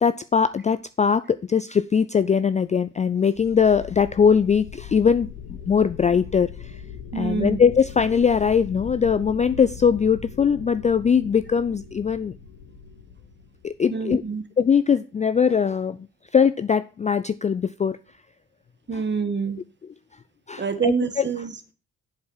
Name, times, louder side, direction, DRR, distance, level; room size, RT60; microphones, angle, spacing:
voice 1, 0.0-5.3 5.7-6.5 7.1-12.3 13.6-14.2 14.6-16.0 16.3-18.0 18.9-19.0 20.5-21.2, left 6 dB, 20° left, 14 dB, 0.4 m, -21 dB
sound 1, 3.4-14.0, left 6 dB, 85° left, 1.4 m, -40 dB
voice 2, 7.1-7.6 13.9-14.4 18.9-19.6 20.6-21.7, right 6 dB, 30° right, 11 dB, 1.4 m, -27 dB
7.7 x 5.7 x 5.6 m, 0.35 s
hypercardioid pair, 50°, 35 cm